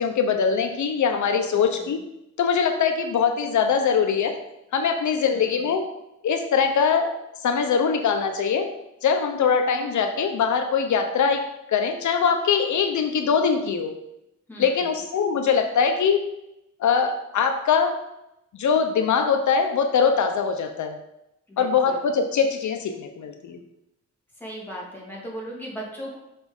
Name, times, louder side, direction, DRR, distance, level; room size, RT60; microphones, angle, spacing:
voice 1, 0.0-2.0 2.4-4.3 4.7-5.8 6.2-7.1 7.4-8.7 9.0-13.9 14.6-16.2 16.8-18.0 18.5-21.0 21.6-23.6, left 6 dB, 80° left, 5 dB, 0.7 m, -22 dB
voice 2, 1.5-2.0 5.3-5.7 14.5-15.0 21.5-22.1 24.4-26.2, equal, 5° left, -5 dB, 2.3 m, -38 dB
5.9 x 4.3 x 5.2 m, 0.86 s
wide cardioid pair, 120°, 29 cm